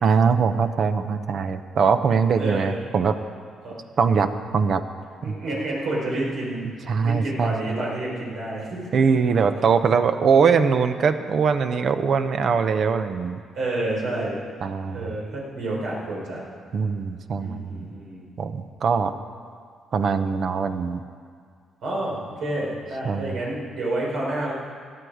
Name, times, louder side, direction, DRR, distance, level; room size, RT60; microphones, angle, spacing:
voice 1, 0.0-3.2 4.0-4.8 5.2-5.3 6.9-7.5 8.9-13.4 14.6-15.1 16.7-17.9 18.4-19.1 19.9-21.0 23.0-23.4, right 5 dB, 55° right, 10 dB, 0.8 m, -22 dB
voice 2, 2.4-2.8 3.6-3.9 5.2-6.7 7.0-9.0 9.3-9.4 13.6-14.4 14.9-16.4 17.4-18.3 21.8-24.5, right 1 dB, 75° right, -4 dB, 4.8 m, -29 dB
17.5 x 11.5 x 5.0 m, 2.1 s
cardioid pair, 90°, 0 cm